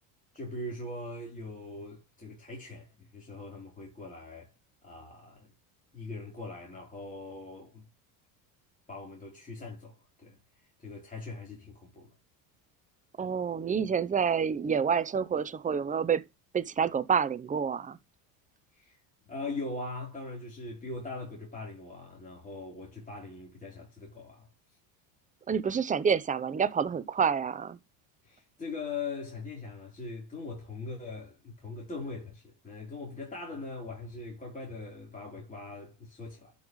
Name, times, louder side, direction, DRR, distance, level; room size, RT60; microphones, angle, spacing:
voice 1, 0.3-4.5 4.8-5.5 5.9-7.9 8.9-12.1 18.7-19.0 19.3-24.5 28.2-36.5, left 3 dB, 15° left, 3.8 m, -41 dB
voice 2, 13.2-16.2 16.5-18.0 25.5-27.8, right 7 dB, 20° right, 0.7 m, -28 dB
12.0 x 5.6 x 3.1 m
cardioid pair, 125°, 44 cm